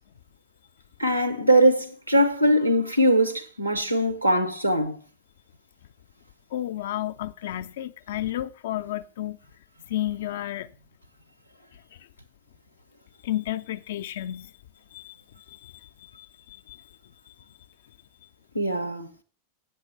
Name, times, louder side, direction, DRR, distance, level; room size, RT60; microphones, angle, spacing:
voice 1, 1.0-4.9 18.5-19.1, right 1 dB, 85° right, 0.9 m, -21 dB
voice 2, 6.5-9.4 9.9-10.7 13.2-14.5 14.9-15.1 15.5-15.9 16.2-16.8, left 13 dB, 55° left, 0.4 m, -32 dB
8.4 x 6.2 x 5.4 m
figure-of-eight pair, 90°, 0 cm